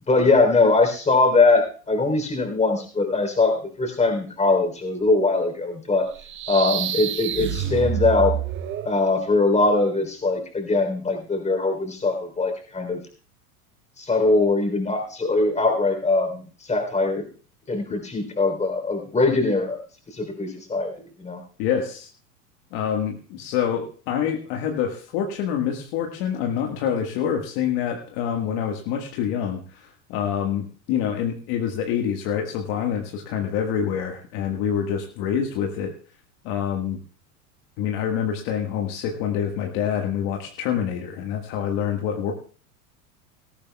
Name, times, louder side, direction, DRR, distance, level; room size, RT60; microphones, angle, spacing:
voice 1, 0.1-6.1 6.5-8.3 8.9-13.0 14.0-17.3 17.7-19.8 20.1-20.9 21.2-21.4, left 3 dB, 15° left, 5 dB, 3.5 m, -21 dB
sound 1, 6.1-9.0, right 9 dB, 25° right, 0.8 m, -28 dB
voice 2, 21.6-22.1 22.7-35.9 36.4-37.0 37.8-42.3, left 8 dB, 50° left, 2 dB, 1.7 m, -26 dB
18.5 x 14.0 x 2.3 m, 0.39 s
hypercardioid pair, 100°, 46 cm